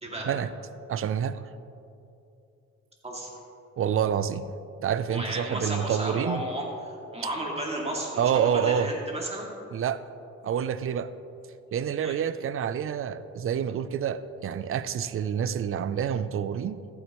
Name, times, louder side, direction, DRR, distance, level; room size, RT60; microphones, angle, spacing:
voice 1, 0.9-1.4 3.8-4.5 4.8-6.4 8.2-8.9 9.7-10.0 10.4-11.1 11.7-16.8, right 8 dB, 45° right, 14 dB, 0.5 m, -27 dB
voice 2, 3.0-3.4 5.1-9.5 12.0-12.2, right 1 dB, 20° right, -2 dB, 2.4 m, -33 dB
14.0 x 9.1 x 3.1 m, 2.7 s
cardioid pair, 90°, 30 cm